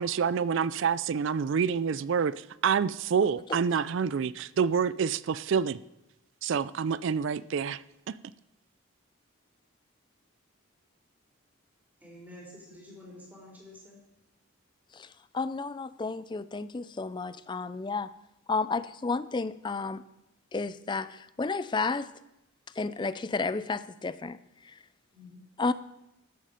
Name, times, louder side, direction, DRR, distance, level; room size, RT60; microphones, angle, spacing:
voice 1, 0.0-5.8 6.4-7.8 8.1-8.2, right 6 dB, 55° right, 0.3 m, -27 dB
voice 2, 12.0-14.0 25.1-25.4, left 1 dB, 10° right, 3.9 m, -49 dB
voice 3, 14.9-18.1 18.5-20.0 20.5-22.1 22.8-24.4 24.6-24.7 25.6-25.7, left 4 dB, 20° left, 0.3 m, -32 dB
13.5 x 8.3 x 5.2 m
head